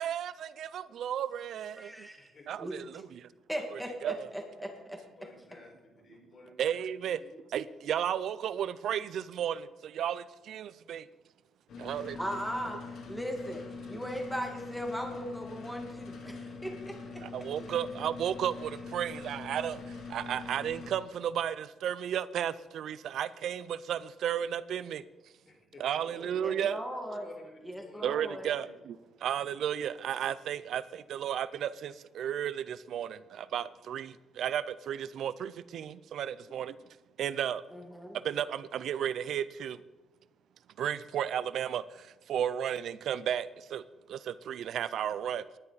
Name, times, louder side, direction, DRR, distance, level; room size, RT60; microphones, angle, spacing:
voice 1, 0.0-2.1 2.5-3.3 3.7-4.3 6.6-7.2 7.5-11.1 11.8-12.2 17.2-25.0 25.8-26.8 28.0-36.8 37.2-37.6 38.2-39.8 40.8-45.5, right 9 dB, 70° right, 16 dB, 0.5 m, -34 dB
voice 2, 1.8-2.3 2.6-2.7 3.5-5.0 12.2-12.8 13.1-17.2 26.0-27.3 27.6-28.5 37.7-38.2, equal, ahead, 2 dB, 2.0 m, -38 dB
voice 3, 5.1-6.7 7.3-7.4 11.7-11.9 12.4-12.5 25.5-25.8 27.2-28.3 28.6-28.7 36.5-36.7, left 3 dB, 45° left, 0 dB, 5.0 m, -54 dB
sound 1, 11.7-20.9, left 4 dB, 70° left, 3.4 m, -44 dB
19.5 x 11.0 x 4.1 m, 1.2 s
cardioid pair, 120°, 0 cm